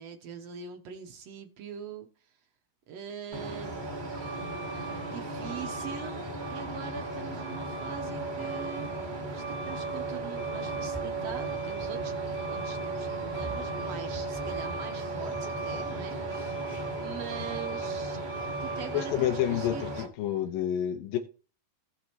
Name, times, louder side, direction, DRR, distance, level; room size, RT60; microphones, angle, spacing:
voice 1, 0.0-2.1 2.9-4.1 5.0-8.9 9.3-12.1 12.5-20.0, right 7 dB, 70° right, 1.6 m, -43 dB
Truck, 3.3-20.1, right 3 dB, 40° right, 0.6 m, -35 dB
voice 2, 18.9-21.2, left 11 dB, 80° left, 2.7 m, -29 dB
18.5 x 6.1 x 3.0 m
omnidirectional pair, 3.9 m